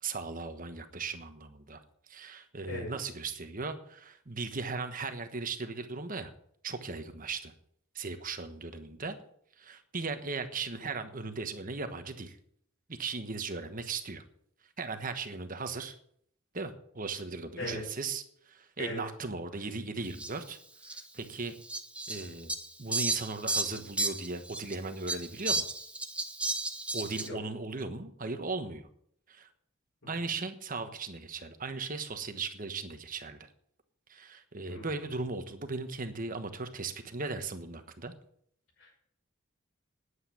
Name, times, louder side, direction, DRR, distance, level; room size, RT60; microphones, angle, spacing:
voice 1, 0.0-1.8 2.1-6.3 6.6-7.5 7.9-9.2 9.6-12.4 12.9-14.2 14.8-15.9 16.5-20.6 20.9-21.5 22.1-22.5 22.8-25.6 26.9-28.9 29.3-29.5 30.1-33.5 34.1-38.1, right 4 dB, 45° right, 8 dB, 1.3 m, -37 dB
voice 2, 2.7-2.9 17.6-17.8 18.8-19.0 27.2-27.4 30.0-30.1 34.7-34.9 38.8-39.0, left 1 dB, 75° left, -3 dB, 5.8 m, -38 dB
Fowl, 20.2-20.3 20.8-21.0 21.7-24.7 25.1-27.3, right 2 dB, 5° right, 0.8 m, -33 dB
9.7 x 8.9 x 8.5 m, 0.67 s
head